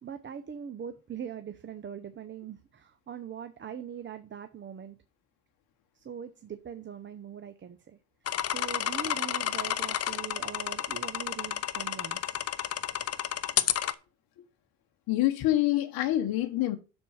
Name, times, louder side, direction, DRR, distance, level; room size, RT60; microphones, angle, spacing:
voice 1, 0.0-5.0 5.9-8.0 8.4-12.4, right 8 dB, 25° right, 0.7 m, -42 dB
sound 1, 8.3-13.9, left 10 dB, 35° left, 0.6 m, -30 dB
voice 2, 15.1-16.8, left 14 dB, 55° left, 1.0 m, -26 dB
6.8 x 4.4 x 6.3 m
supercardioid pair, 75°, 42 cm